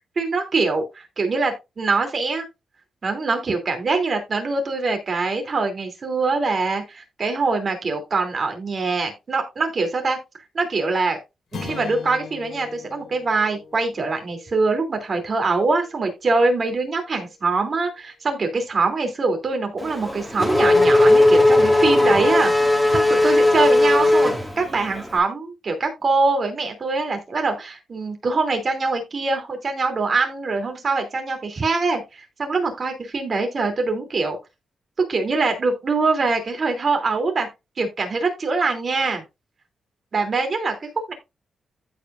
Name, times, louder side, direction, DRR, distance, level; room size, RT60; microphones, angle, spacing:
voice 1, 0.2-2.4 3.0-10.2 10.5-11.2 11.5-34.4 35.1-37.5 37.8-39.2 40.1-41.1, right 3 dB, 40° right, 4 dB, 2.9 m, -23 dB
sound 1, 11.5-16.0, left 5 dB, 70° left, 2.7 m, -39 dB
Race car auto racing / Accelerating revving vroom, 19.8-25.1, left 2 dB, 5° left, 2.1 m, -17 dB
15.0 x 5.1 x 2.5 m, 0.24 s
cardioid pair, 115°, 0 cm